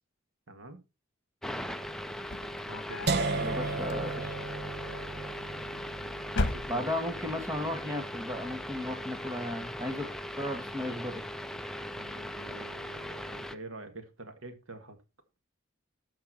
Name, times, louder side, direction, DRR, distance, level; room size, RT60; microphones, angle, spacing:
voice 1, 0.5-0.8 2.7-3.7 4.8-5.1 6.0-6.9 10.0-10.2 12.0-15.0, right 2 dB, 80° right, 2.0 m, -47 dB
sound 1, 1.4-13.5, left 1 dB, ahead, 0.7 m, -39 dB
sound 2, 2.2-3.3 3.8-4.5 5.4-5.9 6.3-7.2, left 2 dB, 60° left, 1.3 m, -35 dB
sound 3, 3.1-9.0, right 3 dB, 60° right, 1.0 m, -36 dB
voice 2, 3.4-4.3 6.7-10.1 10.4-11.1, left 1 dB, 15° right, 2.1 m, -35 dB
13.0 x 7.3 x 4.3 m
head